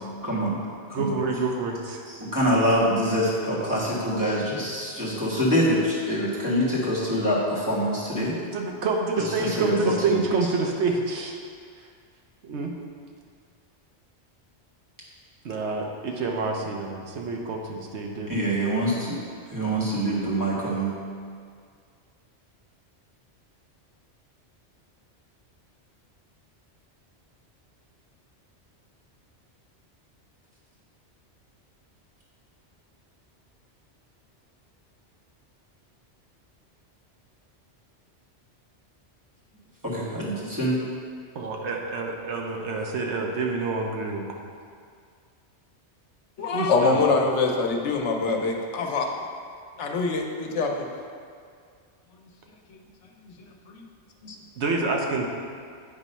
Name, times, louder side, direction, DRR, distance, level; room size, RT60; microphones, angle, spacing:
voice 1, 0.2-0.6 0.9-1.2 2.1-8.3 9.2-10.2 18.3-19.2 19.5-20.9 39.8-40.8, equal, 15° right, -8 dB, 1.5 m, -25 dB
voice 2, 0.9-2.0 8.4-11.4 12.4-12.7 15.4-18.4 41.3-44.4 46.5-47.0 54.6-55.3, right 3 dB, 75° right, 1 dB, 1.0 m, -28 dB
voice 3, 46.4-49.1 49.8-50.9 52.7-52.8 53.2-53.3 53.7-53.8 54.2-54.4, left 4 dB, 90° left, 2 dB, 1.0 m, -24 dB
8.4 x 3.0 x 5.4 m, 2.1 s
omnidirectional pair, 1.2 m